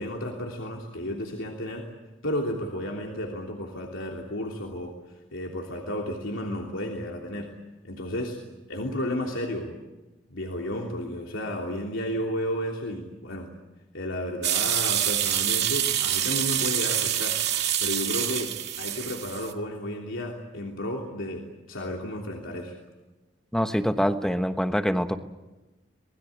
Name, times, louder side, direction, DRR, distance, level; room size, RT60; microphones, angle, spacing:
voice 1, 0.0-1.9 2.2-7.5 7.8-8.4 8.7-9.7 10.3-13.5 13.9-17.4 17.8-22.7, left 1 dB, 80° left, 0 dB, 3.2 m, -32 dB
sound 1, 14.4-19.5, right 11 dB, 55° right, 2.3 m, -26 dB
voice 2, 23.5-25.2, equal, 5° left, 8 dB, 1.1 m, -25 dB
26.5 x 20.5 x 8.5 m, 1.1 s
head